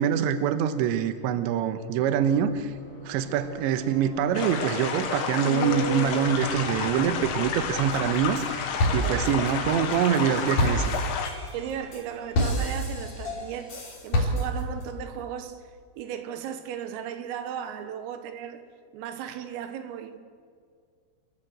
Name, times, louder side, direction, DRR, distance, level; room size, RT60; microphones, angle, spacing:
voice 1, 0.0-2.7 3.1-10.8, right 8 dB, 75° right, 3.1 m, -25 dB
sound 1, 2.0-12.4 12.7-12.8, left 3 dB, 55° right, 10.0 m, -40 dB
sound 2, 4.3-11.3, left 7 dB, 85° left, 4.5 m, -31 dB
sound 3, 7.9-8.5 8.8-14.8, equal, 35° left, 4.7 m, -28 dB
voice 2, 8.7-9.5 11.5-15.7 16.0-18.6 18.9-20.2, right 9 dB, 90° right, 4.0 m, -36 dB
29.5 x 15.0 x 8.0 m
omnidirectional pair, 5.8 m